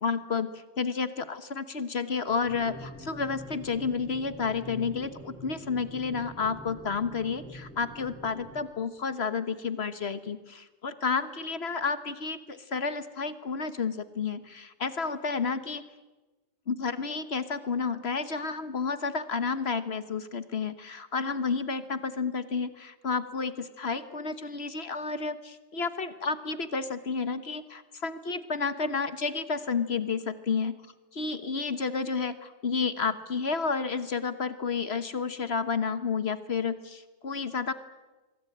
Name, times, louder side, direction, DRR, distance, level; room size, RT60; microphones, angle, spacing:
voice 1, 0.0-15.8 16.7-30.8 31.1-37.7, left 5 dB, 40° left, 12 dB, 1.2 m, -31 dB
sound 1, 2.4-8.6, equal, 5° left, 6.0 m, -45 dB
25.0 x 23.5 x 8.8 m, 1.2 s
omnidirectional pair, 2.0 m